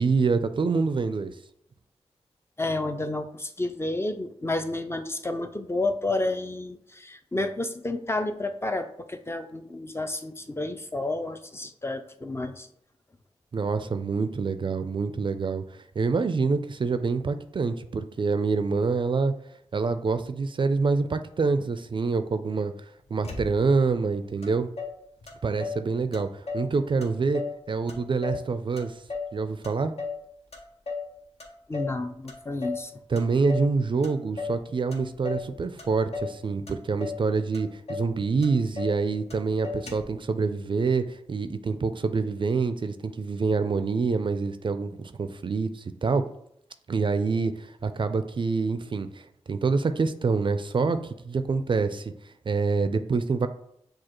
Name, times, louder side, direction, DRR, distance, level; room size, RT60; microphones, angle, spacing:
voice 1, 0.0-1.4 13.5-19.3 19.7-22.7 23.1-24.7 25.4-29.0 29.3-29.9 33.1-46.2 46.9-52.1 52.5-53.5, right 4 dB, 45° right, 10 dB, 0.4 m, -26 dB
voice 2, 2.6-12.7 31.7-32.9, left 2 dB, 20° left, 7 dB, 0.4 m, -30 dB
Motor vehicle (road), 23.2-23.9 24.4-24.5 24.8-25.8 26.1-26.7 27.0-27.6 27.9-29.4 29.6-30.2 30.5-31.1 31.4-32.0 32.3-32.9 33.2-33.7 34.0-34.6 34.9-35.5 35.8-36.4 36.7-37.2 37.5-37.6 37.9-38.1 38.4-39.0 39.3-39.4 39.6-40.2, left 4 dB, 65° left, 0.8 m, -35 dB
6.3 x 2.3 x 3.0 m, 0.72 s
cardioid pair, 55°, 12 cm